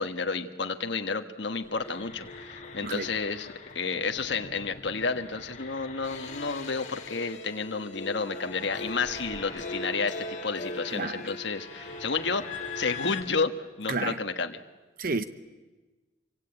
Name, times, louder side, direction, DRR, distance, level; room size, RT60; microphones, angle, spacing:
voice 1, 0.0-3.5 3.7-13.5 13.8-14.6, left 4 dB, 65° left, 6 dB, 1.4 m, -31 dB
sound 1, 1.6-13.2, left 3 dB, 40° left, 2.6 m, -40 dB
voice 2, 10.9-11.3 13.9-14.2 15.0-15.2, right 3 dB, 50° right, 11 dB, 0.9 m, -31 dB
27.0 x 24.5 x 8.9 m, 1.2 s
head